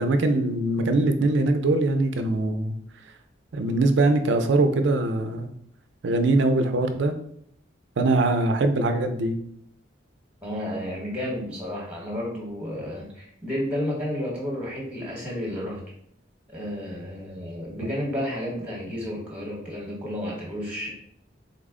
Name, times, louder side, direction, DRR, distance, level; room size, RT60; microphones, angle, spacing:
voice 1, 0.0-2.8 3.5-5.5 6.0-7.1 8.0-9.4, right 2 dB, 65° right, 7 dB, 0.4 m, -22 dB
voice 2, 10.4-15.8 16.5-20.9, equal, 5° right, -3 dB, 1.0 m, -31 dB
3.8 x 2.0 x 3.6 m, 0.68 s
head